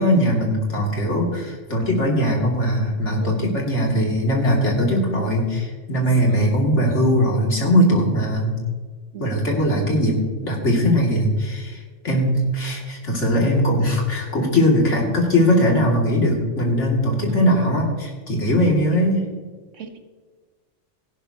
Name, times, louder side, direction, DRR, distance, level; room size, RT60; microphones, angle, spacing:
voice 1, 0.0-8.6 9.2-19.2, equal, 70° left, -1 dB, 3.0 m, -20 dB
voice 2, 3.2-3.6 6.1-6.5 9.1-9.4 17.3-17.8 19.7-20.0, right 7 dB, 80° right, 7 dB, 1.5 m, -34 dB
16.5 x 11.5 x 3.0 m, 1.5 s
omnidirectional pair, 1.3 m